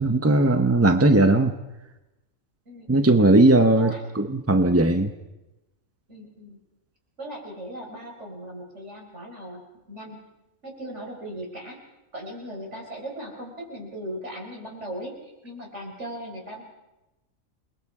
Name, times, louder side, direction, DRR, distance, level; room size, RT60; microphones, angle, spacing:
voice 1, 0.0-1.6 2.9-5.1, right 2 dB, 15° right, 8 dB, 0.5 m, -18 dB
voice 2, 2.7-3.2 3.8-4.0 6.1-6.6 7.2-9.6 9.9-10.2 10.6-11.8 12.1-16.6, right 1 dB, 55° right, 0 dB, 4.8 m, -38 dB
28.5 x 20.5 x 4.8 m, 1.0 s
omnidirectional pair, 1.4 m